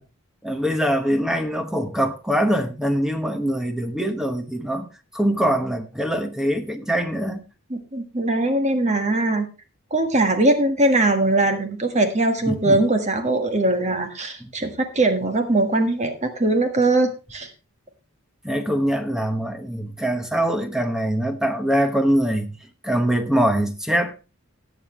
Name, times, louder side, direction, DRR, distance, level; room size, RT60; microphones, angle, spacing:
voice 1, 0.4-4.9 5.1-7.4 12.5-12.8 14.4-14.5 18.4-22.5 22.8-24.1, equal, 5° right, 1.0 m, -23 dB
voice 2, 7.7-9.5 9.9-17.5, right 2 dB, 35° right, 1.5 m, -21 dB
18.5 x 7.1 x 3.2 m
head